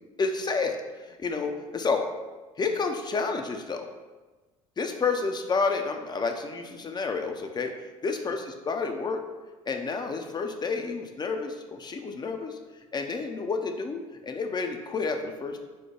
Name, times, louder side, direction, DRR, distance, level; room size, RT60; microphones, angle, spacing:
voice 1, 0.2-2.1 2.6-3.9 4.8-7.7 8.0-9.2 9.7-12.6 12.9-15.6, left 4 dB, 25° left, 5 dB, 0.5 m, -30 dB
4.7 x 2.1 x 4.3 m, 1.2 s
figure-of-eight pair, 60°, 18 cm